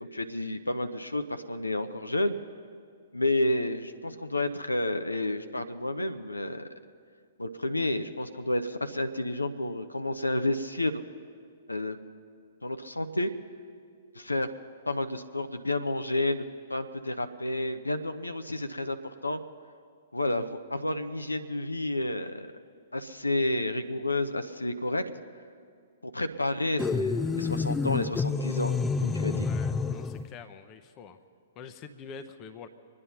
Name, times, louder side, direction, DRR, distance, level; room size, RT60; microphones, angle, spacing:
voice 1, 0.0-2.3 3.1-6.6 7.4-11.0 11.7-12.0 12.6-13.3 14.1-14.5 14.9-19.0 19.2-19.4 20.1-22.5 22.9-25.0 26.0-28.7 29.0-29.5, left 1 dB, 80° left, 8 dB, 0.8 m, -30 dB
sound 1, 26.8-30.3, left 4 dB, 10° left, 0.5 m, -28 dB
voice 2, 29.3-31.2 31.6-32.7, left 6 dB, 30° left, 10 dB, 0.8 m, -46 dB
24.5 x 9.8 x 5.7 m, 2.2 s
figure-of-eight pair, 115°, 0 cm